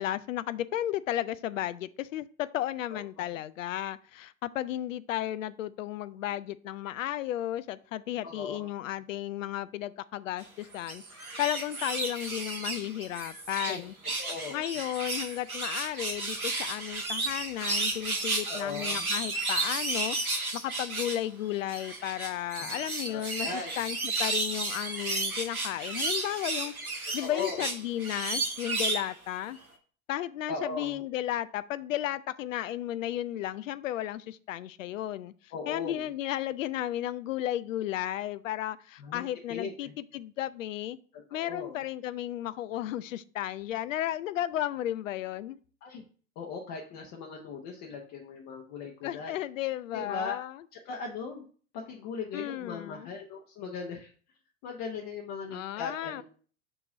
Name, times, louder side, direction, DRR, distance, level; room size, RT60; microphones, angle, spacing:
voice 1, 0.0-13.9 14.5-29.6 30.1-35.3 35.7-41.0 41.3-45.6 49.0-50.6 52.3-53.1 55.5-56.2, left 13 dB, 65° left, 15 dB, 0.5 m, -34 dB
voice 2, 2.9-3.3 8.2-8.7 13.7-13.8 14.2-14.6 18.4-19.1 22.6-22.8 23.1-23.7 27.2-27.7 30.5-31.0 35.5-36.1 39.0-39.2 39.5-39.9 41.1-41.8 45.8-46.0 46.4-49.3 49.9-50.4 50.7-51.5 51.7-54.1 54.6-56.2, left 5 dB, 40° left, -1 dB, 1.0 m, -38 dB
sound 1, 10.7-13.8 14.0-21.2 21.7-29.1 29.6-29.7, right 2 dB, 90° right, 1.1 m, -33 dB
6.3 x 3.0 x 5.0 m, 0.43 s
figure-of-eight pair, 85°, 42 cm